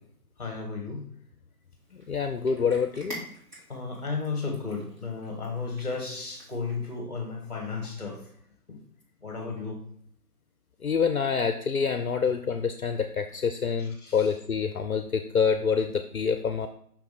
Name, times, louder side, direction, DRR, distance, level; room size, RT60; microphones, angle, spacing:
voice 1, 0.4-1.1 3.7-8.3 8.7-8.8 9.2-9.8 13.8-14.3, left 4 dB, 25° left, 2 dB, 1.5 m, -34 dB
Cat, 1.8-7.0, equal, 30° right, 2.3 m, -47 dB
voice 2, 1.9-3.2 10.8-16.7, left 6 dB, 65° left, 8 dB, 0.5 m, -27 dB
5.9 x 3.5 x 5.0 m, 0.65 s
figure-of-eight pair, 165°, 47 cm